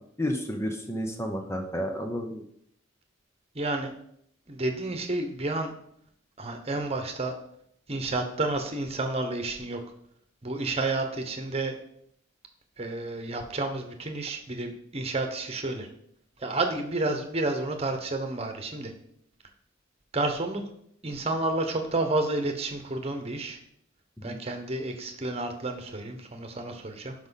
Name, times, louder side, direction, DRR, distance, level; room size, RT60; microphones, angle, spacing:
voice 1, 0.2-2.4 24.2-24.4, equal, 15° left, 4 dB, 0.7 m, -31 dB
voice 2, 3.5-3.9 4.5-5.7 6.4-7.3 7.9-9.8 10.4-11.7 12.8-15.9 16.4-18.9 20.1-20.6 21.0-23.6 24.2-27.1, right 2 dB, 30° right, 6 dB, 1.2 m, -30 dB
11.5 x 5.2 x 4.1 m, 0.68 s
head